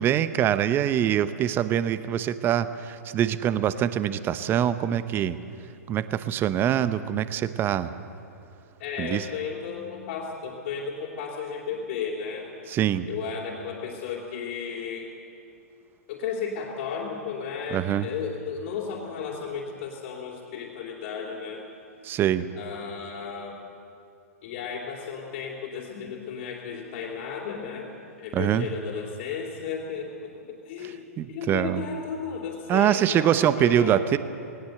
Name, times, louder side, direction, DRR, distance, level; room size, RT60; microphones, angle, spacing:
voice 1, 0.0-5.4 5.9-7.9 9.0-9.2 12.7-13.1 17.7-18.1 22.0-22.5 28.3-28.7 30.8-31.8 32.7-34.2, right 10 dB, 25° right, 14 dB, 0.8 m, -24 dB
voice 2, 8.8-12.5 13.1-15.1 16.1-21.6 22.6-23.6 24.4-34.0, left 6 dB, 50° left, -3 dB, 3.1 m, -34 dB
19.0 x 19.0 x 7.9 m, 2.5 s
hypercardioid pair, 115°, 9 cm